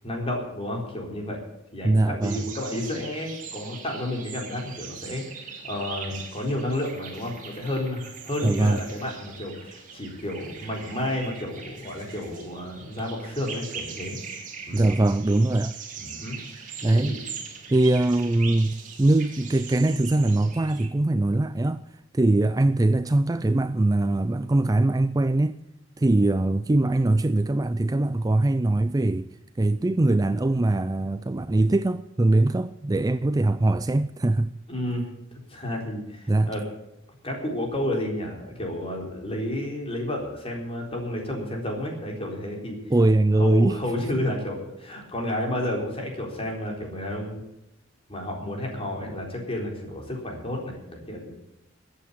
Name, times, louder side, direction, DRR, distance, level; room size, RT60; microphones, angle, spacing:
voice 1, 0.0-1.4 1.7-14.2 14.7-14.9 16.0-16.4 16.8-17.2 34.7-35.1 35.5-36.6 37.2-42.8 43.3-47.4 48.1-51.3, left 1 dB, 30° left, 4.1 m, -31 dB
voice 2, 1.8-2.4 8.4-8.8 14.7-15.8 16.8-17.2 17.7-21.8 22.1-25.6 26.0-29.3 29.6-34.5 36.3-36.5 42.9-43.8, right 2 dB, 20° right, 0.4 m, -22 dB
sound 1, 2.2-20.9, right 6 dB, 40° right, 2.8 m, -41 dB
14.0 x 8.5 x 8.6 m
head